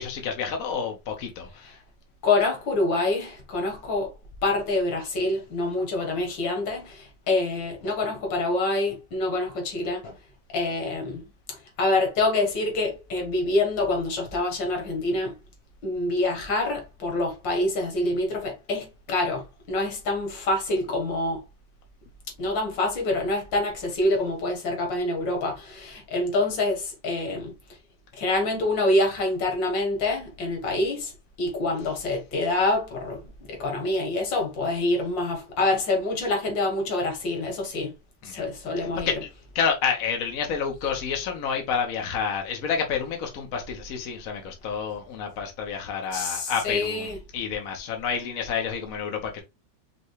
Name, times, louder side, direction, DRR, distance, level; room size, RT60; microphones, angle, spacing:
voice 1, 0.0-1.8 38.2-38.4 38.8-39.2 39.5-49.4, left 6 dB, 55° left, 1.3 m, -29 dB
voice 2, 2.2-4.1 4.4-10.1 10.5-11.2 11.5-15.3 15.8-21.4 22.4-27.5 28.2-31.1 31.4-37.9 38.3-39.1 46.1-47.2, left 2 dB, 90° left, 2.1 m, -26 dB
5.5 x 2.4 x 3.0 m
omnidirectional pair, 2.0 m